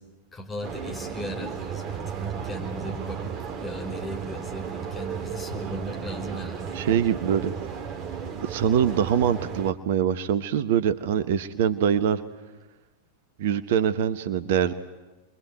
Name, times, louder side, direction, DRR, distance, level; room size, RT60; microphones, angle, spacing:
voice 1, 0.3-6.8 8.1-8.3, equal, 15° left, 2 dB, 5.0 m, -37 dB
sound 1, 0.6-9.7, right 7 dB, 35° right, 1.9 m, -34 dB
voice 2, 6.7-7.5 8.4-12.2 13.4-14.7, right 9 dB, 55° right, 12 dB, 1.1 m, -24 dB
28.0 x 23.0 x 9.2 m, 1.1 s
figure-of-eight pair, 90°, 0 cm